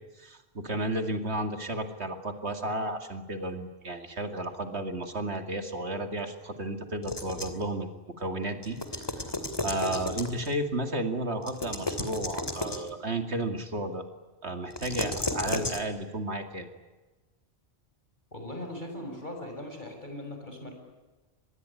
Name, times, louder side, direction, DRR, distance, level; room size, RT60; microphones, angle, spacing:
voice 1, 0.2-7.9 8.2-9.4 9.6-14.0 14.4-16.7, right 1 dB, 85° right, 6 dB, 2.7 m, -33 dB
sound 1, 7.0-7.7 8.6-10.5 11.4-12.9 14.7-15.8, left 1 dB, 20° left, 2.7 m, -33 dB
voice 2, 18.3-20.7, left 1 dB, 45° left, 3 dB, 6.6 m, -39 dB
25.5 x 21.0 x 9.8 m, 1.2 s
omnidirectional pair, 1.1 m